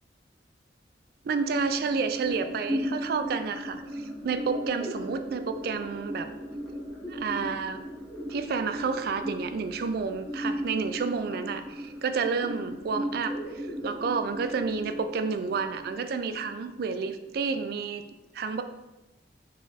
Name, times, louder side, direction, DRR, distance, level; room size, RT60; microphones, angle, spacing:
voice 1, 1.2-6.3 7.1-7.8 8.3-18.0 18.3-18.6, right 5 dB, 55° right, 9 dB, 0.3 m, -30 dB
sound 1, 1.3-17.3, equal, 10° left, 1.2 m, -37 dB
3.7 x 3.2 x 3.9 m, 1.0 s
head